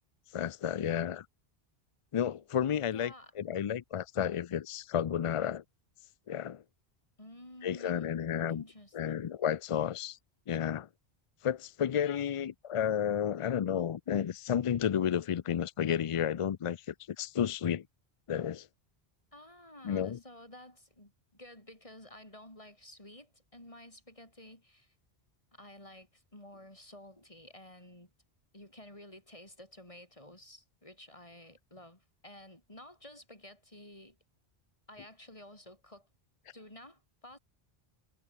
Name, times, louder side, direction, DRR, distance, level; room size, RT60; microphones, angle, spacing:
voice 1, 0.3-1.3 2.1-5.6 6.3-6.6 7.6-8.6 8.9-10.2 10.5-10.9 11.4-17.8 18.3-18.7 19.8-20.2, left 9 dB, 60° left, 0.3 m, -32 dB
voice 2, 2.9-3.3 7.2-8.1 8.5-9.2 19.3-24.9 25.5-28.1 28.5-34.2 34.9-36.1 36.5-37.4, left 1 dB, 30° left, 5.5 m, -52 dB
omnidirectional pair, 1.1 m